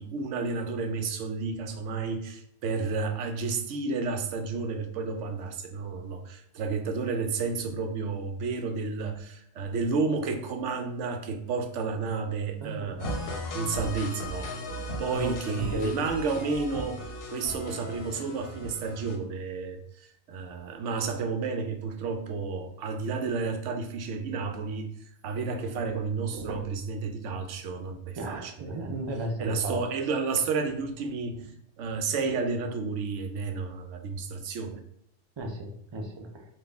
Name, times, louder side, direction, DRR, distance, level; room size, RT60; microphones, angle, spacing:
voice 1, 0.0-24.9 25.2-29.0 29.4-34.8, right 4 dB, 80° right, 6 dB, 0.9 m, -31 dB
voice 2, 12.6-13.2 15.0-15.9 28.2-29.8 35.4-36.5, right 1 dB, 50° right, 2 dB, 0.3 m, -34 dB
sound 1, 13.0-19.2, left 1 dB, 60° left, 0.8 m, -37 dB
4.1 x 2.4 x 3.4 m, 0.73 s
omnidirectional pair, 1.2 m